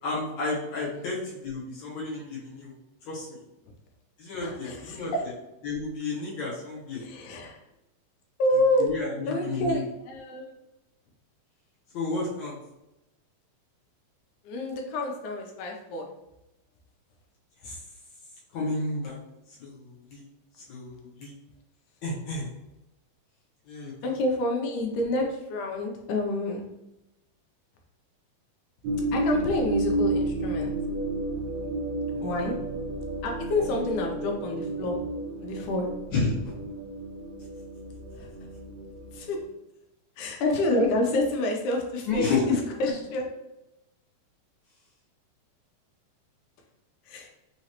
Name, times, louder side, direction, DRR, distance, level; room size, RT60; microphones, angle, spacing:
voice 1, 0.0-2.7 3.1-3.4 4.2-5.1 5.6-7.0 8.8-9.8 11.9-12.6 17.6-17.8 18.5-19.2 19.6-19.9 20.1-20.2 20.7-21.3 22.0-22.5 23.7-23.9 36.1-36.5 42.1-42.5, left 3 dB, 65° left, -6 dB, 2.2 m, -31 dB
voice 2, 4.4-5.2 6.9-7.6 8.4-8.9 9.3-10.5 14.4-16.1 24.0-26.7 29.1-30.7 32.2-32.6 33.2-35.0 35.4-35.9 38.2-38.3 39.1-39.4 40.2-43.3 47.1-47.3, left 1 dB, 80° left, 1 dB, 2.0 m, -28 dB
sound 1, 28.8-39.4, right 2 dB, 70° right, 2.2 m, -31 dB
5.6 x 3.0 x 2.9 m, 0.92 s
omnidirectional pair, 4.0 m